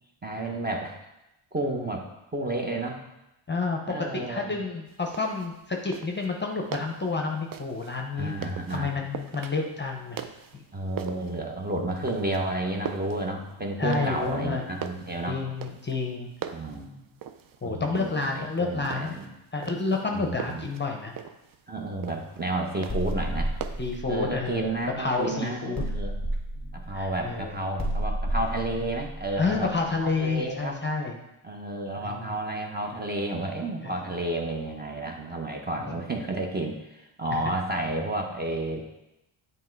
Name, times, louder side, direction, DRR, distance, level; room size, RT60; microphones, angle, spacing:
voice 1, 0.2-1.0 1.5-2.1 2.3-3.0 3.9-4.6 8.2-8.9 10.7-15.4 16.5-17.0 17.6-19.3 20.1-20.6 21.7-23.5 24.1-26.1 26.7-29.7 30.0-30.8 31.4-38.8, right 2 dB, 20° right, 1 dB, 0.8 m, -31 dB
voice 2, 3.5-3.8 4.1-8.3 8.7-10.2 10.5-10.6 13.8-14.6 15.3-16.3 17.6-19.2 19.5-21.1 23.8-25.8 26.9-27.6 29.4-31.2 32.0-32.4 33.8-33.9 35.9-36.0 37.3-37.4, left 4 dB, 20° left, 2 dB, 0.7 m, -29 dB
sound 1, 4.9-24.0, right 8 dB, 45° right, 0.5 m, -42 dB
sound 2, 22.9-25.2 25.8-30.4, right 1 dB, ahead, 1.7 m, -32 dB
7.3 x 3.3 x 4.5 m, 0.92 s
cardioid pair, 85°, 50 cm